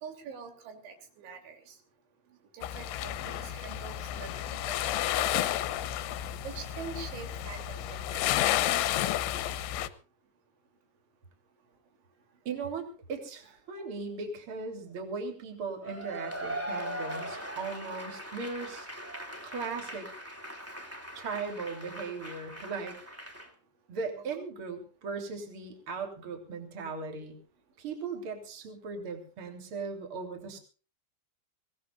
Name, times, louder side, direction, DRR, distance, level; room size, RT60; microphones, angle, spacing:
voice 1, 0.0-1.8 2.5-4.9 5.2-5.7 6.4-8.3 13.8-13.9, right 6 dB, 85° right, 4 dB, 5.4 m, -45 dB
sound 1, 2.6-9.9, left 13 dB, 90° left, 3.3 m, -31 dB
voice 2, 12.5-18.9 19.4-20.1 21.1-23.0 23.9-27.4 27.8-30.6, right 4 dB, 30° right, 4 dB, 3.7 m, -38 dB
Cheering / Applause / Crowd, 15.8-23.5, right 1 dB, 10° right, 1.0 m, -40 dB
24.0 x 18.5 x 2.5 m, 0.36 s
omnidirectional pair, 5.2 m